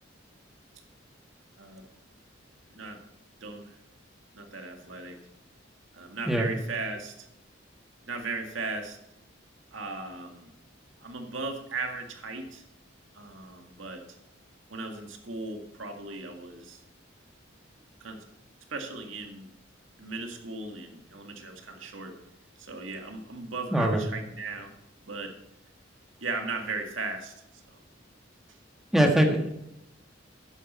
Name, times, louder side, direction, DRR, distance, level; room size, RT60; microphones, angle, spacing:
voice 1, 3.4-3.8 4.3-5.2 5.9-7.3 8.1-9.0 9.7-10.5 11.0-12.6 13.1-14.0 14.7-16.8 18.0-18.2 18.7-19.5 20.0-22.2 22.6-24.7 25.0-25.4 26.2-27.8, right 3 dB, 75° right, 4 dB, 2.0 m, -37 dB
voice 2, 23.7-24.0 28.9-29.5, right 1 dB, ahead, 2 dB, 1.8 m, -22 dB
13.5 x 10.5 x 4.3 m, 0.82 s
head